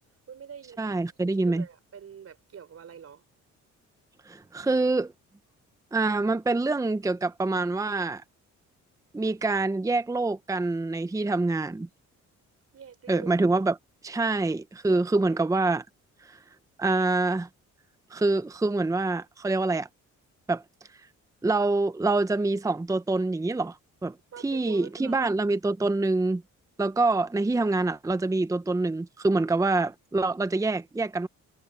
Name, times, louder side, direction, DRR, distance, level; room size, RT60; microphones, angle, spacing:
voice 1, 0.3-1.0 1.2-3.2 12.7-13.6 14.9-15.4 24.3-25.3, right 7 dB, 55° right, 4.6 m, -45 dB
voice 2, 0.8-1.6 4.3-5.1 5.9-8.2 9.1-11.9 13.1-13.7 14.0-15.8 16.8-17.5 18.1-19.9 20.5-20.6 21.4-23.8 24.0-24.2 24.4-26.4 26.8-31.3, right 3 dB, 10° right, 0.7 m, -25 dB
cardioid pair, 90°, 30 cm